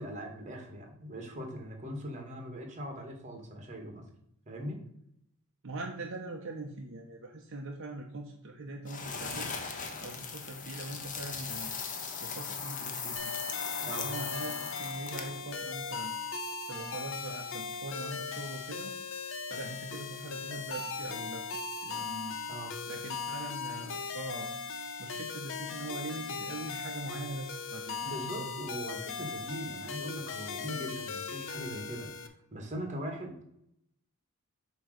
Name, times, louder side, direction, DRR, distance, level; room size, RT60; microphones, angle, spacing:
voice 1, 0.0-4.0 4.4-4.8 13.8-14.1 22.5-22.7 28.0-33.4, equal, 35° right, 3 dB, 1.6 m, -40 dB
voice 2, 5.6-9.5 10.0-11.7 12.2-13.3 13.8-16.1 16.7-18.9 19.5-21.4 21.8-22.4 22.9-24.5 25.0-28.5, right 2 dB, 60° right, 1 dB, 0.9 m, -42 dB
sound 1, 8.9-15.4, left 5 dB, 35° left, 1.0 m, -38 dB
sound 2, 13.2-32.3, left 5 dB, 60° left, 0.8 m, -39 dB
8.0 x 3.1 x 6.3 m, 0.73 s
head